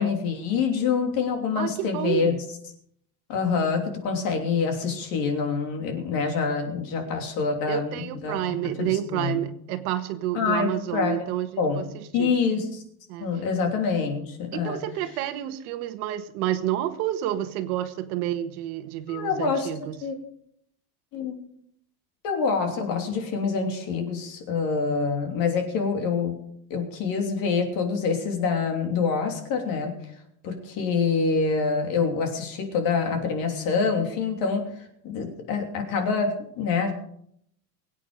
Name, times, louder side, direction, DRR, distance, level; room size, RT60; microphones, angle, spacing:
voice 1, 0.0-2.4 3.3-9.5 10.3-11.2 11.6-11.9 12.1-12.8 13.2-14.8 19.1-19.7 20.0-20.2 21.1-21.4 22.2-26.3 26.7-29.9 30.4-36.9, left 5 dB, 45° left, 4 dB, 3.2 m, -26 dB
voice 2, 1.6-2.4 7.7-12.3 13.1-13.3 14.5-19.9, right 12 dB, 60° right, 9 dB, 1.6 m, -29 dB
23.0 x 8.9 x 5.1 m, 0.70 s
cardioid pair, 175°, 49 cm